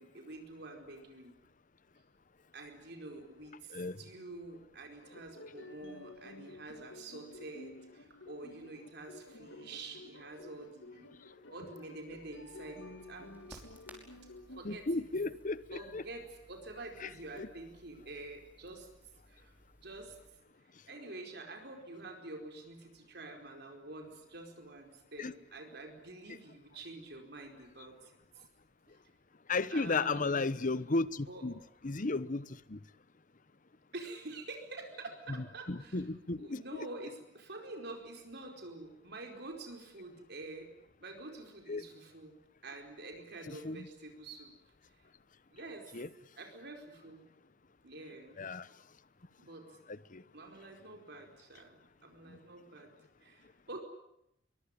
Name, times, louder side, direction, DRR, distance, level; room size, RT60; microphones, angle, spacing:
voice 1, 0.0-1.4 2.5-11.1 11.5-13.6 14.6-14.9 15.7-18.9 19.3-19.5 19.8-20.2 20.9-28.4 29.7-30.5 31.3-31.5 33.9-36.0 36.4-40.7 41.0-42.4 42.6-44.5 45.5-45.9 46.4-47.2 47.8-48.4 49.4-49.8 50.3-52.9 53.2-53.8, right 2 dB, 60° right, 4.7 m, -47 dB
sound 1, 5.0-14.6, left 2 dB, 90° left, 2.4 m, -52 dB
Crackle, 12.1-20.3, equal, 10° right, 5.6 m, -60 dB
voice 2, 14.6-16.0 17.0-17.1 17.4-17.5 25.2-25.3 26.3-26.4 29.5-32.8 35.7-36.6 41.7-41.8 43.5-43.9 45.9-46.1 48.4-48.7 49.9-50.2 52.3-52.4, left 3 dB, 45° left, 0.9 m, -34 dB
23.0 x 22.5 x 10.0 m
head